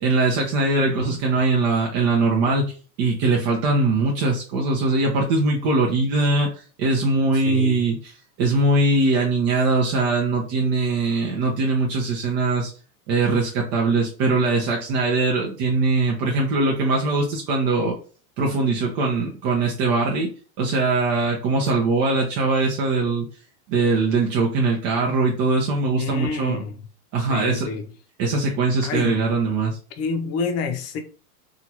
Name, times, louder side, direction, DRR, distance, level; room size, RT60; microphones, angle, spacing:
voice 1, 0.0-8.1 8.4-12.7 13.1-17.9 18.4-20.3 20.6-23.3 23.7-26.6 27.1-27.7 28.2-29.8, right 3 dB, 35° right, 0.7 m, -21 dB
voice 2, 0.8-1.2 7.3-7.8 26.0-26.8 27.2-27.9 28.8-29.2 30.0-31.0, left 5 dB, 35° left, 0.7 m, -28 dB
2.8 x 2.4 x 2.9 m
hypercardioid pair, 110°, 46 cm